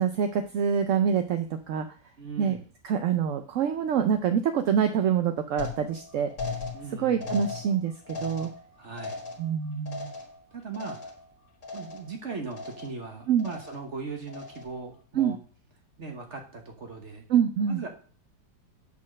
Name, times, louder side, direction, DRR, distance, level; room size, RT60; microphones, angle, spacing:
voice 1, 0.0-1.9 2.4-2.6 2.8-6.3 7.0-7.9 8.2-8.5 9.4-10.1 13.3-13.5 15.1-15.4 17.3-17.8, right 8 dB, 65° right, 7 dB, 0.8 m, -25 dB
voice 2, 2.2-2.6 6.7-7.3 8.8-9.2 10.1-10.3 10.5-11.1 11.7-15.4 16.0-17.2 17.7-17.9, right 4 dB, 45° right, 3 dB, 1.4 m, -39 dB
sound 1, 5.6-11.4 11.6-12.2 12.5-13.1 13.4-13.9 14.3-14.8, left 3 dB, 60° left, 2.3 m, -38 dB
8.5 x 4.3 x 6.3 m, 0.42 s
omnidirectional pair, 1.8 m